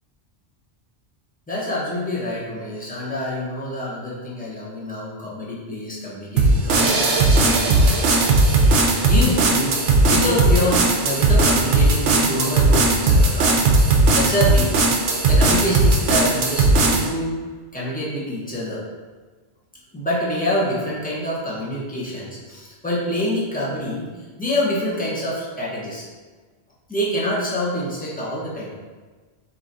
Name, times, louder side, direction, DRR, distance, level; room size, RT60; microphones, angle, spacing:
voice 1, 1.5-8.2 9.1-13.6 14.1-14.9 15.3-17.3 17.7-18.8 19.9-24.1 24.4-26.0 26.9-28.8, left 1 dB, 10° left, -7 dB, 0.9 m, -26 dB
sound 1, 6.4-17.1, right 2 dB, 65° right, 0.9 m, -17 dB
3.8 x 2.9 x 3.9 m, 1.4 s
omnidirectional pair, 1.2 m